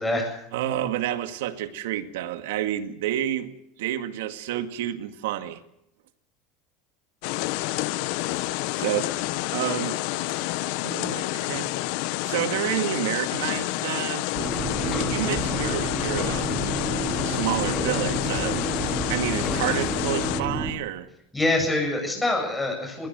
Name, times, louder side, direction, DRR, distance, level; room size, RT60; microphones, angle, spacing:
voice 1, 0.0-0.4 21.3-23.1, left 2 dB, 10° left, 1 dB, 8.0 m, -25 dB
voice 2, 0.5-3.5 3.8-5.6 8.7-10.0 10.8-11.7 12.2-14.3 14.8-16.5 17.2-18.7 19.1-21.1, right 12 dB, 85° right, 9 dB, 1.9 m, -29 dB
sound 1, 7.2-20.4, left 18 dB, 70° left, 0.9 m, -29 dB
sound 2, 14.4-20.5, left 6 dB, 30° left, 3.1 m, -37 dB
sound 3, 14.4-20.7, right 2 dB, 35° right, 3.2 m, -30 dB
21.5 x 18.5 x 7.9 m, 0.79 s
supercardioid pair, 125°, 0 cm